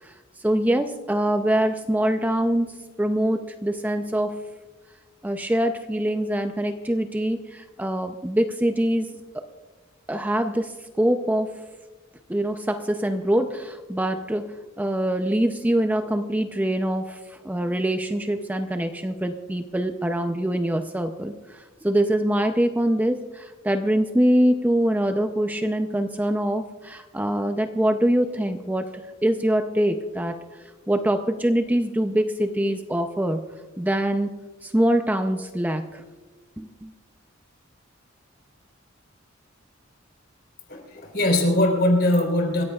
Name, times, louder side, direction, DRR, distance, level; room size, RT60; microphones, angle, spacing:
voice 1, 0.0-4.4 5.2-9.4 10.1-11.6 12.3-30.4 30.9-33.4 33.8-34.3 34.6-36.0 36.6-36.9, right 1 dB, 10° right, 6 dB, 0.5 m, -24 dB
voice 2, 40.7-42.6, left 1 dB, 55° left, 2 dB, 3.7 m, -21 dB
27.0 x 15.0 x 2.4 m, 1.3 s
head